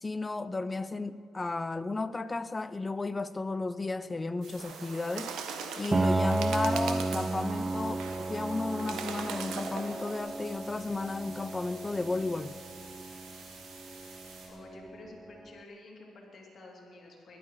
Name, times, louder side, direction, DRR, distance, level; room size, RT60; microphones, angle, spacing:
voice 1, 0.0-5.4 5.8-12.5, left 3 dB, 20° left, 0.5 m, -34 dB
sound 1, 4.4-14.5, right 4 dB, 70° right, 4.2 m, -50 dB
Bird, 4.6-10.2, right 6 dB, 90° right, 1.3 m, -40 dB
Piano, 5.9-15.5, right 2 dB, 30° right, 0.6 m, -34 dB
voice 2, 14.5-17.4, left 2 dB, 50° left, 3.1 m, -50 dB
20.5 x 12.0 x 4.8 m
cardioid pair, 90°, 0 cm